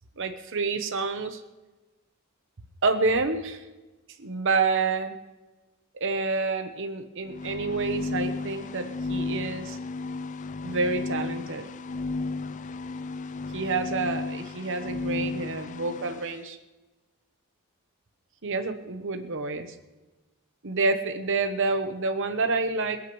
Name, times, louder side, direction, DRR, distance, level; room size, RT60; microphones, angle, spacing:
voice 1, 0.2-1.4 2.8-3.6 4.2-5.2 6.0-9.8 10.6-11.6 13.5-16.6 18.4-19.8 20.6-23.0, right 3 dB, 55° right, 6 dB, 1.0 m, -28 dB
sound 1, 7.3-16.4, left 3 dB, 35° left, 0.4 m, -34 dB
27.0 x 9.0 x 3.2 m, 1.2 s
head